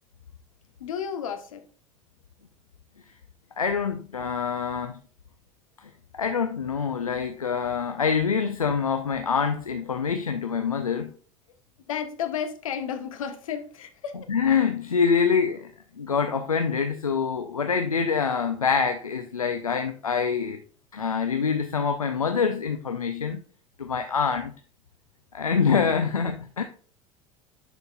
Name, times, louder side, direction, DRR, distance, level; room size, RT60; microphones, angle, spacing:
voice 1, 0.8-1.7 11.9-14.2, left 8 dB, 75° left, 1.3 m, -32 dB
voice 2, 3.6-5.0 5.8-11.1 14.3-15.7 16.0-20.6 20.9-23.4 23.8-24.5 25.3-26.6, left 6 dB, 90° left, 0.6 m, -25 dB
10.5 x 4.5 x 2.4 m
figure-of-eight pair, 70°, 18 cm